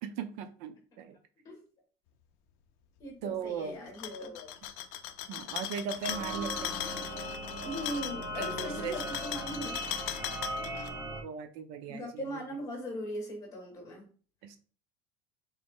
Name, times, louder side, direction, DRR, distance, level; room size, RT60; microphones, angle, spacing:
voice 1, 0.0-1.2 3.2-3.8 5.3-6.8 8.3-9.1 11.2-12.4 14.4-14.6, right 7 dB, 65° right, 9 dB, 0.6 m, -38 dB
voice 2, 3.0-4.5 7.6-9.8 11.9-14.0, equal, 25° left, 1 dB, 1.7 m, -39 dB
sound 1, 3.9-10.9, left 12 dB, 60° left, 0.5 m, -39 dB
sound 2, 6.1-11.2, right 1 dB, 15° right, 1.1 m, -38 dB
3.6 x 3.1 x 4.4 m, 0.40 s
cardioid pair, 165°, 14 cm